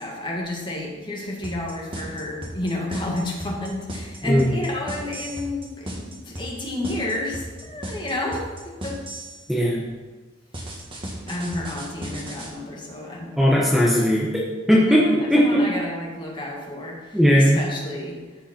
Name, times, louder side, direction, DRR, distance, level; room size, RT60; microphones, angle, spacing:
voice 1, 0.0-8.4 8.8-9.0 11.3-13.5 14.8-18.2, left 1 dB, 25° left, -2 dB, 2.0 m, -30 dB
sound 1, 1.4-9.4 10.5-12.5, right 1 dB, 25° right, 1.8 m, -35 dB
voice 2, 9.5-9.8 13.4-14.3 14.7-15.6 17.1-17.6, equal, ahead, -5 dB, 1.2 m, -18 dB
14.5 x 5.3 x 4.5 m, 1.3 s
head